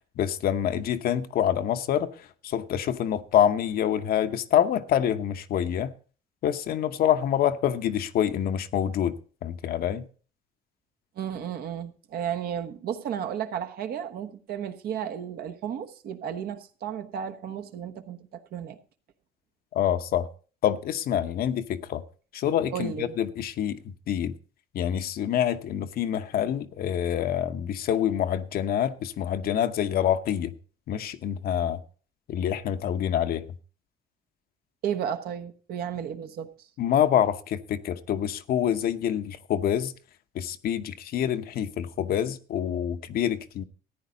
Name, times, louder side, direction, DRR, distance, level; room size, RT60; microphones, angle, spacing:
voice 1, 0.2-2.1 2.4-5.9 6.4-10.1 19.7-20.3 20.6-22.0 22.3-23.8 24.1-24.3 24.7-30.5 30.9-31.8 32.3-33.4 36.8-39.9 40.3-43.6, left 10 dB, 60° left, 0.9 m, -26 dB
voice 2, 11.2-18.8 22.7-23.2 34.8-36.7, right 9 dB, 65° right, 1.2 m, -33 dB
14.0 x 9.6 x 4.0 m
cardioid pair, 110°, 17 cm